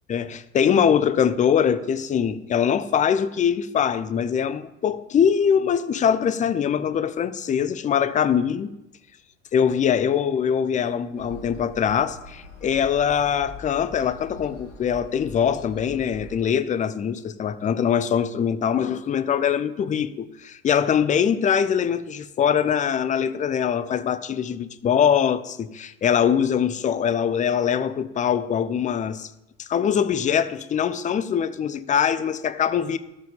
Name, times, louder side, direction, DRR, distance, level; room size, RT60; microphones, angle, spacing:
voice 1, 0.1-8.7 9.5-29.3 29.6-33.0, left 8 dB, 20° left, 0.6 m, -23 dB
sound 1, 11.1-16.4, left 1 dB, 75° left, 2.1 m, -43 dB
13.0 x 5.1 x 5.2 m
figure-of-eight pair, 70°, 36 cm